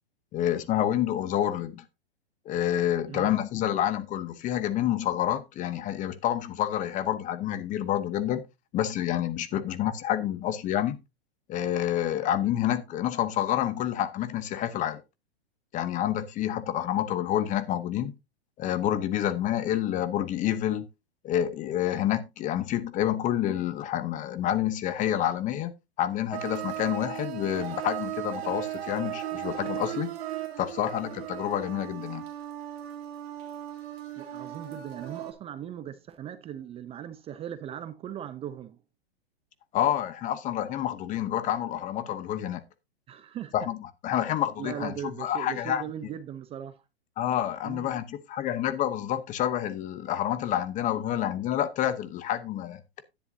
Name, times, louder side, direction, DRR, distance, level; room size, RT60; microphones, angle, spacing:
voice 1, 0.3-1.8 2.5-8.4 8.7-11.0 11.5-15.0 15.7-18.1 18.6-20.9 21.2-30.1 30.6-32.2 39.7-42.6 43.5-43.8 44.0-45.8 47.2-52.8, left 11 dB, 25° left, 0.9 m, -28 dB
sound 1, 26.3-35.3, right 12 dB, 70° right, 2.6 m, -36 dB
voice 2, 34.2-38.8 43.1-43.5 44.6-46.8 47.6-47.9, right 10 dB, 20° right, 0.6 m, -39 dB
10.5 x 10.0 x 2.7 m
hypercardioid pair, 135°, 31 cm